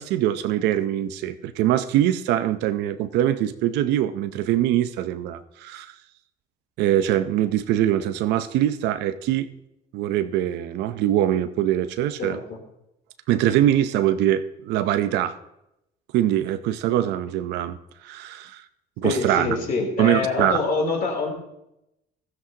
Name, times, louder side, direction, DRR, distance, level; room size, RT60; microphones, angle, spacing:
voice 1, 0.0-5.9 6.8-9.5 9.9-12.4 13.3-15.3 16.1-17.8 18.0-18.6 19.0-19.6 20.0-20.6, right 12 dB, 90° right, 12 dB, 0.7 m, -23 dB
voice 2, 12.2-12.6 19.0-21.3, left 3 dB, 55° left, 0 dB, 3.4 m, -25 dB
15.5 x 14.0 x 2.9 m, 0.86 s
cardioid pair, 110°, 17 cm